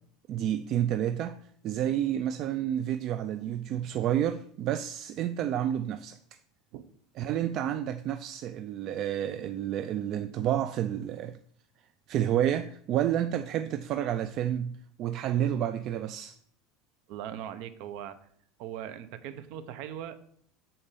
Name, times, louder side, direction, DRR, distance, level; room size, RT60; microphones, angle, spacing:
voice 1, 0.3-6.2 7.2-11.4 12.1-16.4, right 10 dB, 40° right, 0.4 m, -30 dB
voice 2, 17.1-18.3 18.6-20.2, right 10 dB, 60° right, 0.9 m, -40 dB
8.7 x 4.2 x 6.8 m
supercardioid pair, 155°, 0 cm